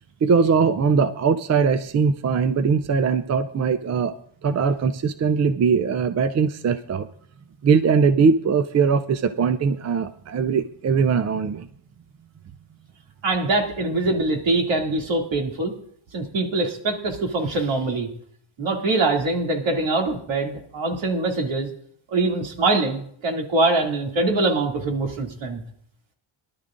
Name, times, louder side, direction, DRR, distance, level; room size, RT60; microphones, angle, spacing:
voice 1, 0.2-4.1 4.4-7.1 7.6-11.7, right 5 dB, 35° right, 11 dB, 0.4 m, -21 dB
voice 2, 13.2-15.7 16.1-18.1 18.6-21.7 22.1-25.6, right 2 dB, 65° right, 1 dB, 2.6 m, -23 dB
22.5 x 12.0 x 2.5 m, 0.65 s
cardioid pair, 140°, 49 cm